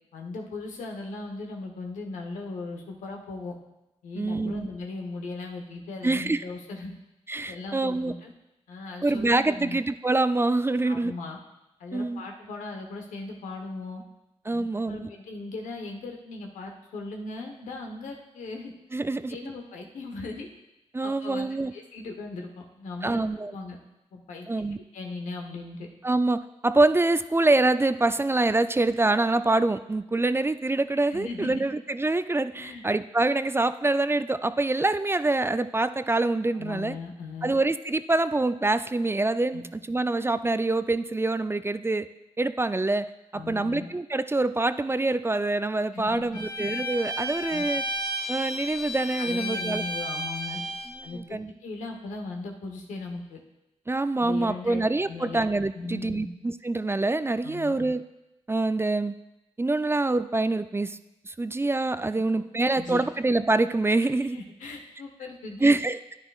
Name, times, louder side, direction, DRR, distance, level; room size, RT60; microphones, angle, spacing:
voice 1, 0.1-3.6 4.0-7.0 7.5-8.3 8.7-9.8 10.8-11.4 11.8-14.0 14.5-18.7 19.3-20.5 21.0-23.2 23.5-23.8 24.1-24.5 24.9-25.9 31.1-31.7 32.6-32.8 36.5-37.5 39.5-39.6 43.3-43.9 45.9-46.4 47.5-47.6 49.2-50.6 51.0-53.4 54.2-55.4 55.7-56.3 57.4-57.7 62.7-63.1 64.3-65.8, left 3 dB, 90° left, 2 dB, 1.0 m, -38 dB
voice 2, 4.2-4.7 6.0-6.4 7.3-8.2 9.0-11.1 11.9-12.2 14.5-15.1 18.9-19.4 20.9-21.7 23.0-23.5 24.5-24.8 26.0-36.9 37.4-42.1 42.4-47.8 48.3-49.8 51.1-51.5 53.9-58.0 58.5-59.1 59.6-61.0 61.2-64.4 65.6-66.0, right 2 dB, 20° right, 12 dB, 0.4 m, -25 dB
Bowed string instrument, 46.3-51.0, equal, 35° left, 2.0 m, -32 dB
9.8 x 9.5 x 2.4 m, 0.94 s
supercardioid pair, 45°, 12 cm